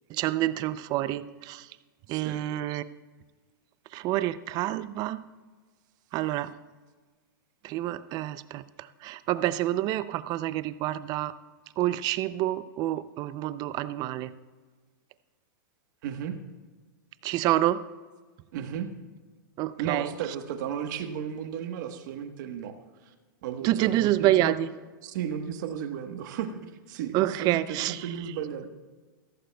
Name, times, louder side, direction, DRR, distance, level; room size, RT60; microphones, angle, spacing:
voice 1, 0.1-1.7 2.1-2.8 3.9-5.2 6.1-6.5 7.6-11.3 11.8-14.3 17.2-17.8 19.6-20.1 23.6-24.7 27.1-28.1, right 14 dB, 35° right, 15 dB, 0.5 m, -28 dB
voice 2, 2.1-2.4 16.0-16.3 18.5-18.9 19.8-22.7 23.0-23.1 23.4-24.5 25.0-28.7, right 8 dB, 60° right, 7 dB, 1.3 m, -34 dB
16.0 x 14.0 x 2.3 m, 1.4 s
hypercardioid pair, 125°, 11 cm